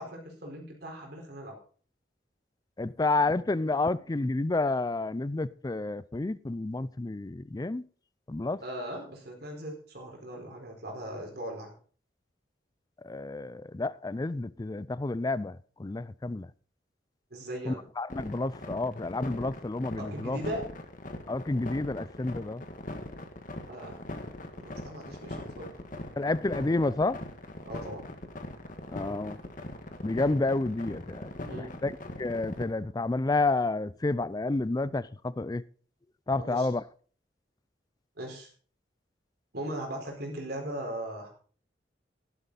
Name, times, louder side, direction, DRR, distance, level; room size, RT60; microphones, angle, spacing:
voice 1, 0.0-1.5 8.6-11.7 17.3-17.8 20.0-20.7 23.7-24.0 24.6-25.7 27.6-28.1 31.4-31.8 36.4-36.7 38.2-38.5 39.5-41.3, right 1 dB, 60° right, 4.4 m, -39 dB
voice 2, 2.8-7.8 8.3-8.6 13.0-16.5 17.7-20.4 21.3-22.6 26.2-27.2 28.9-29.4 30.0-31.9 32.2-35.6 36.3-36.8, left 2 dB, 20° left, 0.4 m, -30 dB
sound 1, 18.1-32.6, left 1 dB, 50° left, 1.6 m, -40 dB
11.5 x 11.5 x 4.1 m
head